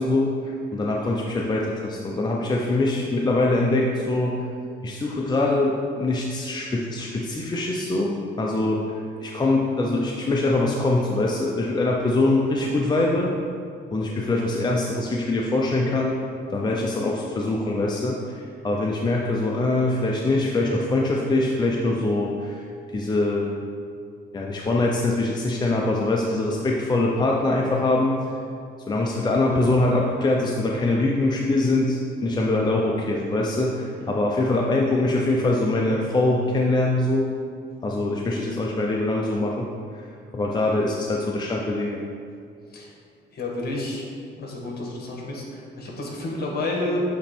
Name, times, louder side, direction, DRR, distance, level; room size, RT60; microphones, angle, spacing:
voice 1, 0.0-4.4 4.8-13.3 13.9-16.2 16.5-22.6 22.9-23.5 24.3-28.2 28.9-37.3 37.8-39.7 39.9-40.0 40.3-42.0, left 2 dB, 20° left, -1 dB, 0.6 m, -23 dB
voice 2, 43.3-44.1 44.4-47.0, left 2 dB, 50° left, -1 dB, 1.5 m, -30 dB
8.4 x 3.0 x 4.3 m, 2.3 s
cardioid pair, 90°, 20 cm